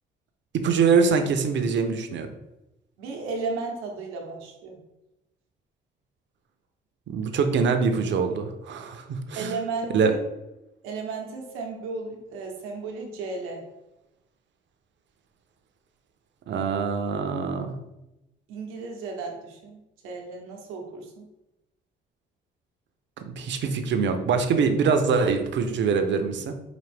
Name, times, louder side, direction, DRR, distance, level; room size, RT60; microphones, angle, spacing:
voice 1, 0.6-2.3 7.1-9.5 9.9-10.1 16.5-17.7 23.2-26.5, right 5 dB, 60° right, 7 dB, 0.7 m, -24 dB
voice 2, 3.0-4.8 9.3-10.2 10.8-13.6 18.5-21.3, right 4 dB, 90° right, 1 dB, 1.0 m, -34 dB
5.1 x 2.5 x 3.3 m, 0.95 s
supercardioid pair, 70°, 21 cm